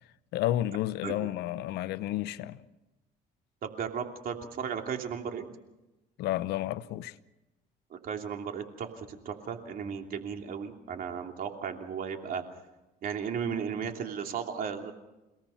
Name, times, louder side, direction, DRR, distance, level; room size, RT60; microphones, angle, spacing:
voice 1, 0.3-2.6 6.2-7.1, left 14 dB, 85° left, 0.9 m, -31 dB
voice 2, 3.6-5.4 7.9-12.4 13.0-14.9, right 7 dB, 60° right, 2.9 m, -35 dB
30.0 x 18.0 x 5.7 m
cardioid pair, 110°, 17 cm